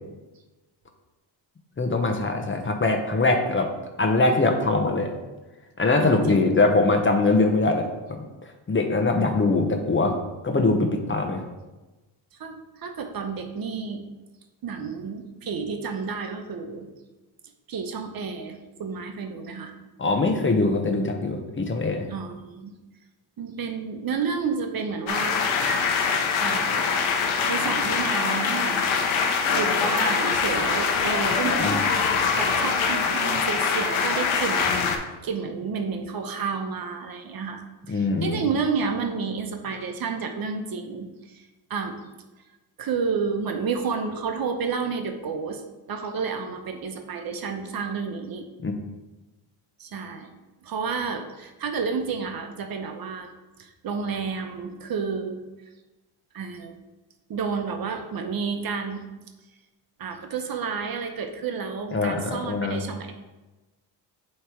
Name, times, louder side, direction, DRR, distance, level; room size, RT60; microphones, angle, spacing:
voice 1, 1.8-3.7 4.0-5.1 5.8-7.9 8.7-10.1 10.4-11.4 20.0-22.1 31.4-31.8 37.9-38.4 48.6-48.7 61.9-62.8, left 3 dB, 25° left, 4 dB, 1.0 m, -22 dB
voice 2, 6.0-6.5 12.4-14.0 14.6-16.9 17.7-19.8 22.1-22.7 23.4-25.4 26.4-26.9 27.5-28.9 29.5-31.9 32.4-34.7 35.2-37.6 37.9-42.0 42.8-45.6 45.9-48.4 49.8-50.3 50.6-53.3 53.6-55.4 56.3-56.7 57.3-59.1 60.0-63.1, right 5 dB, 45° right, 5 dB, 0.9 m, -30 dB
sound 1, 25.1-35.0, left 5 dB, 75° left, 1.0 m, -24 dB
7.6 x 3.3 x 4.5 m, 1.1 s
supercardioid pair, 75°, 48 cm